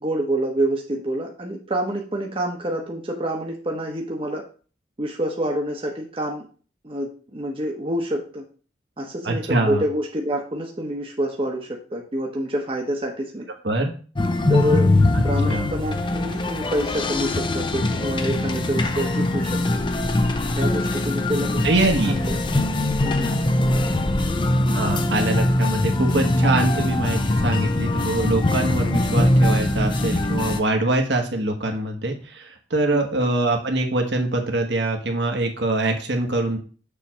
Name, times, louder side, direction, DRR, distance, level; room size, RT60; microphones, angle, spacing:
voice 1, 0.0-4.4 5.0-6.5 6.8-8.4 9.0-13.4 14.5-14.9 15.2-19.8 20.5-21.6 22.1-22.4 23.0-23.3 32.9-33.3, right 1 dB, 30° right, 0 dB, 0.9 m, -27 dB
voice 2, 9.2-9.8 13.6-13.9 15.5-15.7 21.6-22.2 24.7-36.6, right 2 dB, 65° right, 3 dB, 1.3 m, -23 dB
sound 1, 14.2-30.6, left 1 dB, 25° left, 0.5 m, -22 dB
6.9 x 3.3 x 6.1 m, 0.38 s
head